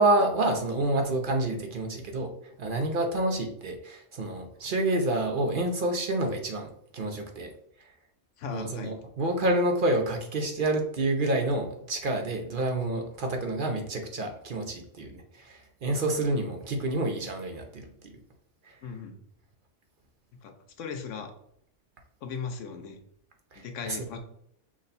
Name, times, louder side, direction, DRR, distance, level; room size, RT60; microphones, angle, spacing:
voice 1, 0.0-2.3 2.6-7.5 8.5-18.1 18.6-18.7 23.5-24.0, right 2 dB, 55° right, 4 dB, 0.7 m, -28 dB
voice 2, 8.4-8.9 18.8-19.2 20.4-21.3 22.2-23.0 23.5-24.2, left 6 dB, 85° left, 5 dB, 1.0 m, -38 dB
6.0 x 2.2 x 4.0 m, 0.72 s
omnidirectional pair, 1.2 m